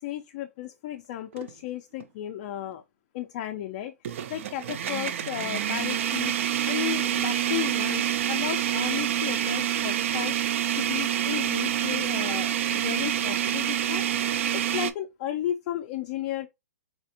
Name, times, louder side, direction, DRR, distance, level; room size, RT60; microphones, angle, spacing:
voice 1, 0.0-2.8 3.1-6.3 6.6-14.0 14.5-16.5, left 12 dB, 30° left, 0.4 m, -34 dB
sound 1, 1.3-1.5 2.0-2.1 4.0-14.9, right 10 dB, 50° right, 0.4 m, -27 dB
4.1 x 2.4 x 2.8 m
hypercardioid pair, 155°, 9 cm